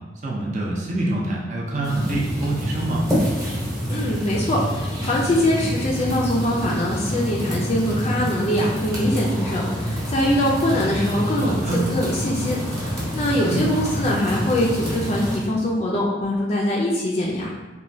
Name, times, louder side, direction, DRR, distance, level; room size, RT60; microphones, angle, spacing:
voice 1, 0.2-3.0 11.4-11.8 13.4-13.7, right 2 dB, 45° right, -4 dB, 0.5 m, -25 dB
sound 1, 1.8-15.4, equal, 20° right, 0.8 m, -27 dB
voice 2, 3.9-17.5, left 1 dB, 35° left, -3 dB, 0.3 m, -23 dB
3.0 x 2.2 x 2.6 m, 1.2 s
head